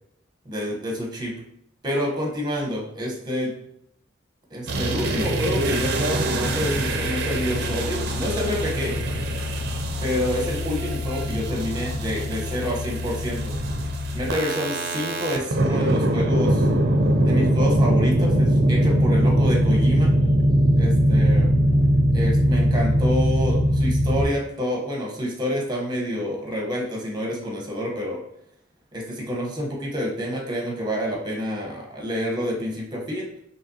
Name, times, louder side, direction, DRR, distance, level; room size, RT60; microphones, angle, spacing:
voice 1, 0.4-1.3 1.8-3.5 4.5-8.9 10.0-13.5 14.1-16.7 17.2-20.1 20.7-21.6 22.1-28.2 28.9-33.3, equal, 20° right, -1 dB, 1.0 m, -28 dB
sound 1, 4.7-24.2, equal, 55° right, 0.5 m, -22 dB
5.1 x 3.2 x 2.8 m, 0.74 s
head